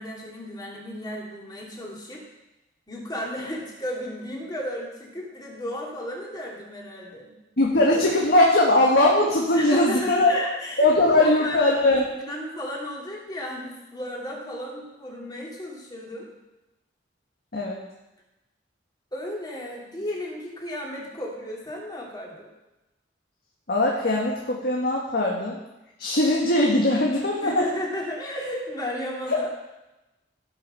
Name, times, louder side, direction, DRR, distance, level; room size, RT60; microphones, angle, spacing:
voice 1, 0.0-2.2 2.9-7.3 9.5-11.7 12.2-16.3 19.1-22.5 27.4-29.5, left 1 dB, 25° left, -3 dB, 2.7 m, -34 dB
voice 2, 7.6-10.3 10.8-12.1 17.5-17.8 23.7-25.6 26.0-27.6 29.3-29.5, left 1 dB, 60° left, -2 dB, 1.7 m, -20 dB
16.0 x 6.1 x 5.6 m, 0.99 s
head